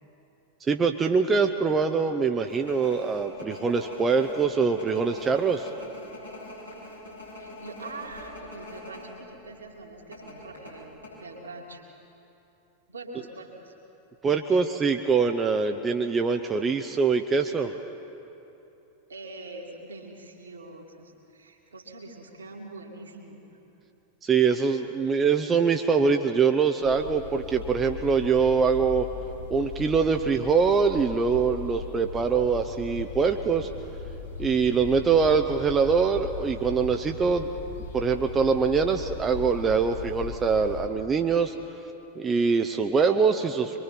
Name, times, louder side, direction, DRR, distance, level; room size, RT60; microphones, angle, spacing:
voice 1, 0.6-5.7 14.2-17.7 24.2-29.1 29.5-33.7 34.4-37.5 37.9-41.5 42.2-43.8, right 5 dB, 20° right, 5 dB, 0.8 m, -23 dB
sound 1, 2.5-9.1 9.4-9.5 10.1-11.1, left 2 dB, 90° left, 6.8 m, -43 dB
voice 2, 7.4-11.8 12.9-13.7 14.5-14.9 19.1-23.4, right 2 dB, 70° right, 0 dB, 2.5 m, -43 dB
sound 2, 26.8-40.9, left 5 dB, 70° left, 3.2 m, -38 dB
24.5 x 23.0 x 5.8 m, 2.9 s
figure-of-eight pair, 90°, 0 cm